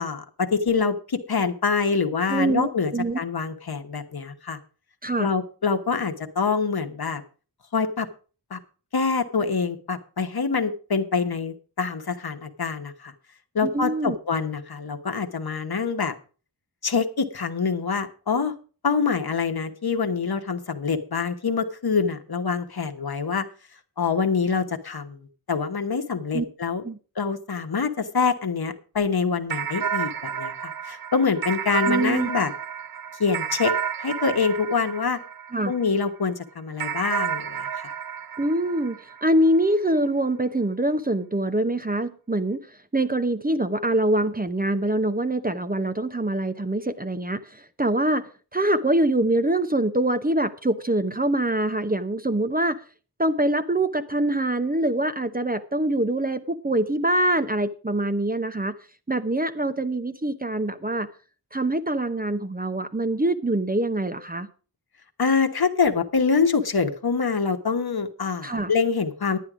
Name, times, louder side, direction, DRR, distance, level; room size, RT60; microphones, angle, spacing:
voice 1, 0.0-4.6 5.2-7.2 7.7-8.1 8.5-8.6 8.9-13.1 13.5-16.1 16.8-18.5 18.8-23.5 24.0-26.8 27.2-32.5 33.2-33.7 34.0-35.2 35.7-37.9 65.2-69.4, left 5 dB, 65° left, 6 dB, 1.2 m, -25 dB
voice 2, 2.3-3.2 5.0-5.3 13.6-14.2 26.3-26.4 26.8-27.0 31.9-32.3 35.5-35.7 38.4-42.6 42.9-52.8 53.2-58.7 59.1-61.1 61.5-64.5 68.4-68.7, right 1 dB, 20° right, 10 dB, 0.8 m, -24 dB
sound 1, 29.5-36.1 36.8-39.6, right 8 dB, 60° right, 0.6 m, -31 dB
10.5 x 9.7 x 4.9 m, 0.37 s
wide cardioid pair, 60°, 40 cm